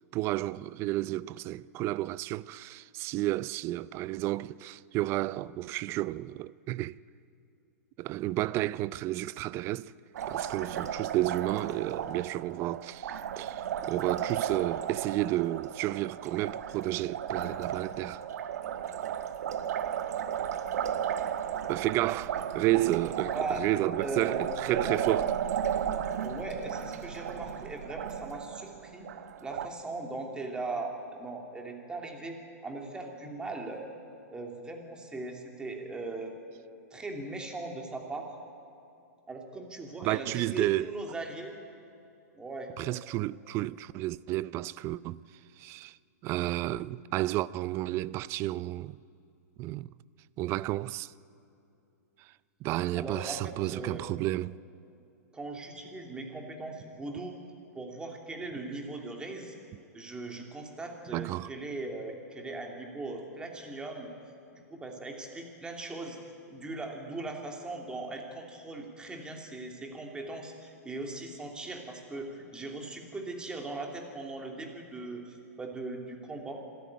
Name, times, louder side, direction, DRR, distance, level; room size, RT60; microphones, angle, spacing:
voice 1, 0.1-7.0 8.0-9.9 10.3-18.2 21.7-25.3 40.0-40.9 42.8-45.2 45.6-46.0 46.2-49.0 49.6-49.9 50.4-51.1 52.2-52.3 52.6-54.6 61.1-61.5, right 16 dB, 30° right, 0.4 m, -31 dB
Liquid, 10.1-29.7, right 9 dB, 65° right, 1.3 m, -34 dB
voice 2, 23.9-25.1 26.2-29.1 29.4-32.4 32.6-33.8 34.3-36.3 36.9-38.3 39.3-41.6 42.4-42.8 53.0-54.0 55.3-57.4 57.7-59.5 59.9-64.1 64.7-66.2 66.5-76.6, right 2 dB, 10° right, 2.7 m, -39 dB
26.0 x 13.5 x 9.6 m
hypercardioid pair, 145°, 9 cm